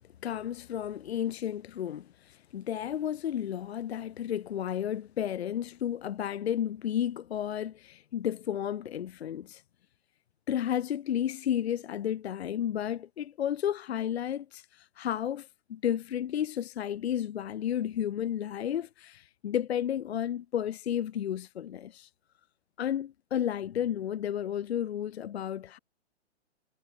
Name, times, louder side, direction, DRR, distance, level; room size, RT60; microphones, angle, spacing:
voice 1, 0.2-9.6 10.5-22.1 22.8-25.8, left 10 dB, 65° left, 0.6 m, -32 dB
hypercardioid pair, 135°, 35 cm